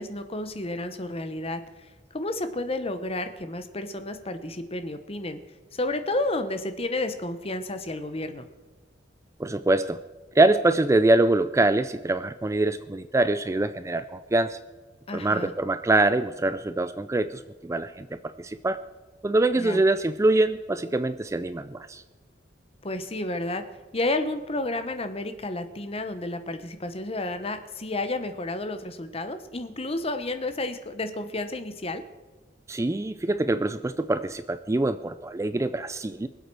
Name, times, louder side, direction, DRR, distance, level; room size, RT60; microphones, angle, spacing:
voice 1, 0.0-5.4 5.7-8.4 15.1-15.5 19.6-19.8 22.8-23.6 23.9-32.0, left 2 dB, 30° left, 9 dB, 1.1 m, -31 dB
voice 2, 9.4-10.0 10.4-14.6 15.1-18.8 19.2-22.0 32.7-36.3, right 2 dB, 15° right, 12 dB, 0.4 m, -24 dB
24.0 x 8.1 x 4.7 m, 1.3 s
head